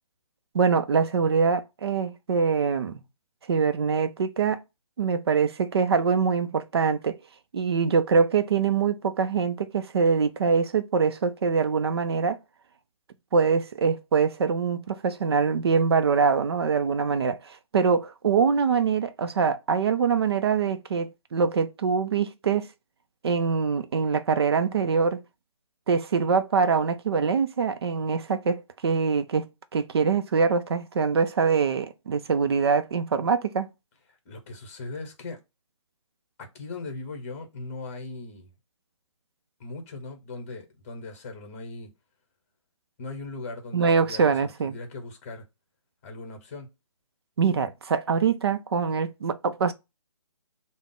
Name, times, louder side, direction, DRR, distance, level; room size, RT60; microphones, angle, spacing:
voice 1, 0.5-3.0 3.5-4.6 5.0-7.2 7.5-12.4 13.3-22.7 23.2-25.2 25.9-29.5 29.7-33.7 43.7-44.7 47.4-49.7, right 5 dB, 50° right, 0.4 m, -24 dB
voice 2, 34.2-35.4 36.4-38.5 39.6-41.9 43.0-45.4 46.0-46.7, left 3 dB, 25° left, 1.0 m, -39 dB
3.5 x 2.0 x 3.7 m
hypercardioid pair, 160°, 17 cm